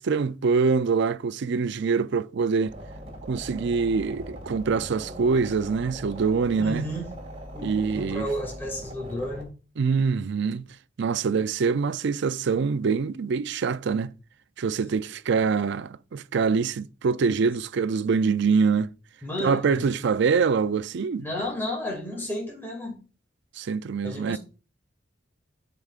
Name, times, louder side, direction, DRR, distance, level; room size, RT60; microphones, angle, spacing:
voice 1, 0.0-2.7 3.3-6.8 7.6-8.3 9.8-10.6 11.0-14.1 14.6-18.9 19.4-21.2 23.6-24.4, right 5 dB, 65° right, 0.4 m, -24 dB
sound 1, 2.7-9.4, right 1 dB, 35° right, 2.1 m, -40 dB
voice 2, 6.6-7.1 7.5-9.5 19.2-19.9 21.2-23.0 24.0-24.4, left 1 dB, 10° left, 2.3 m, -32 dB
13.0 x 5.0 x 2.4 m
head